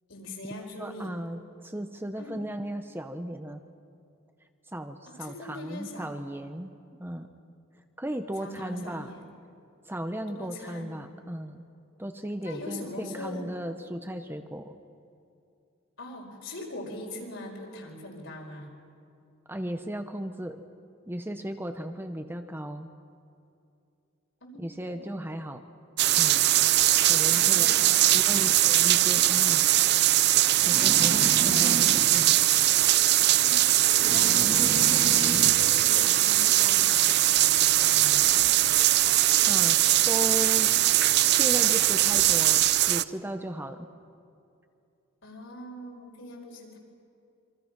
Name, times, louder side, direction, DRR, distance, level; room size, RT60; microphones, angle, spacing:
voice 1, 0.1-1.2 2.2-2.4 5.1-6.1 8.4-9.3 10.3-10.9 12.4-13.5 16.0-18.7 24.4-25.2 27.3-28.4 30.9-31.7 33.4-38.4 45.2-46.8, left 2 dB, 65° left, 0 dB, 5.0 m, -41 dB
voice 2, 0.8-3.6 4.7-6.7 7.0-7.3 8.0-9.1 9.9-11.6 12.0-14.7 19.5-20.6 21.1-22.9 24.6-25.6 26.2-26.4 27.1-27.7 28.1-29.7 30.6-32.4 39.5-39.8 40.1-40.7 41.4-43.9, equal, 10° right, 7 dB, 0.9 m, -36 dB
sound 1, 26.0-43.0, right 14 dB, 55° right, 0.5 m, -21 dB
sound 2, 30.5-32.1 32.5-33.2 33.5-35.6 36.8-36.9 37.2-37.5, right 1 dB, 30° right, 2.5 m, -34 dB
27.5 x 24.5 x 6.0 m, 2.6 s
head